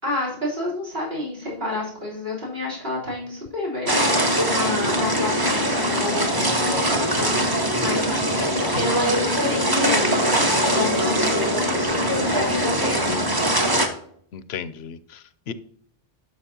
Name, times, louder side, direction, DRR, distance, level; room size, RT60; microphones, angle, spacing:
voice 1, 0.0-13.1, left 1 dB, 65° right, -5 dB, 3.9 m, -29 dB
sound 1, 3.9-13.9, equal, 20° right, 1.1 m, -22 dB
voice 2, 14.3-15.5, left 7 dB, 85° left, 13 dB, 0.9 m, -35 dB
12.0 x 6.4 x 2.8 m, 0.62 s
omnidirectional pair, 1.0 m